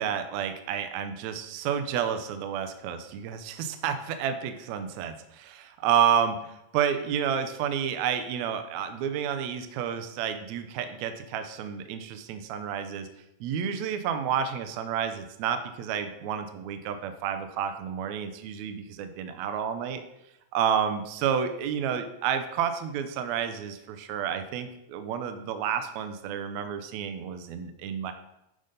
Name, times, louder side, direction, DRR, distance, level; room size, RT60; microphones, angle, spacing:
voice 1, 0.0-13.1 13.4-20.0 20.5-28.1, right 8 dB, 85° right, 8 dB, 1.6 m, -30 dB
10.0 x 4.0 x 5.1 m, 0.85 s
omnidirectional pair, 4.1 m